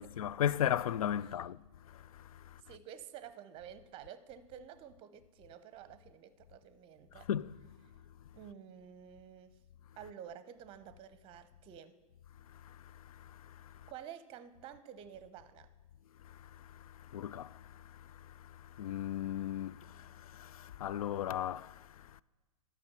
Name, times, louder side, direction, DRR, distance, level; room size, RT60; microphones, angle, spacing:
voice 1, 0.0-1.6 1.9-2.6 7.3-7.5 12.5-13.9 16.2-22.2, left 10 dB, 65° left, 0.4 m, -38 dB
voice 2, 2.6-7.3 8.3-9.5 10.0-11.9 13.9-15.7, right 9 dB, 25° right, 0.7 m, -50 dB
11.5 x 6.0 x 7.1 m
figure-of-eight pair, 110°, 20 cm